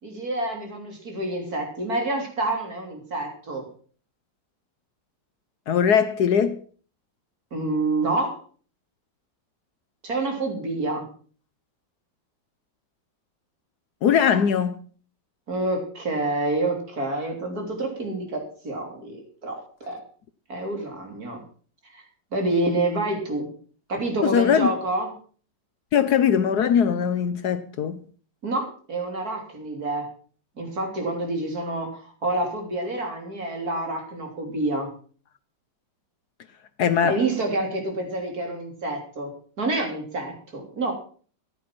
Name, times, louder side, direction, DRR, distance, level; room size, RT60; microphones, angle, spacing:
voice 1, 0.0-3.7 7.5-8.4 10.0-11.1 15.5-20.0 20.5-21.4 21.9-22.0 22.3-23.5 23.9-25.1 28.4-30.1 30.6-34.9 37.0-40.9, right 2 dB, 50° right, 3.8 m, -28 dB
voice 2, 5.7-6.6 14.0-14.8 24.2-24.7 25.9-28.0 36.8-37.2, left 8 dB, 65° left, 1.3 m, -21 dB
14.5 x 10.5 x 6.0 m
omnidirectional pair, 2.0 m